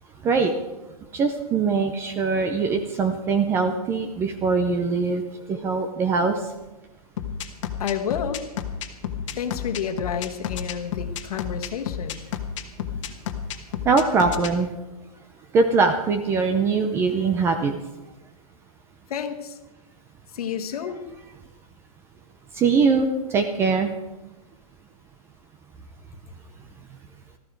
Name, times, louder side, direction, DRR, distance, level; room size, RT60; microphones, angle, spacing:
voice 1, 1.1-5.2 5.5-6.4 13.8-14.7 15.5-17.7 22.5-23.9, right 4 dB, 10° right, 7 dB, 0.5 m, -22 dB
sound 1, 7.2-14.5, left 9 dB, 50° left, 1.3 m, -31 dB
voice 2, 7.8-8.4 9.4-12.2 19.1-19.6 20.3-21.1, left 7 dB, 70° left, 6 dB, 1.4 m, -30 dB
14.5 x 14.0 x 4.6 m, 1.1 s
hypercardioid pair, 165°, 20 cm